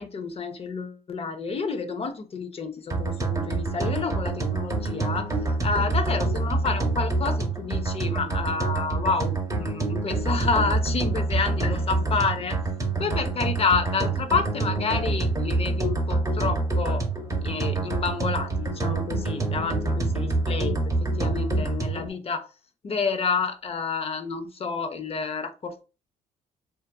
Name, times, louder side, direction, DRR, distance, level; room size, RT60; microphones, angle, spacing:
voice 1, 0.0-12.6 13.0-17.1 17.4-22.5 22.8-25.8, left 4 dB, 40° left, 0.6 m, -29 dB
sound 1, 2.9-22.1, right 3 dB, 20° right, 0.8 m, -26 dB
2.5 x 2.5 x 2.3 m
supercardioid pair, 65°, 16 cm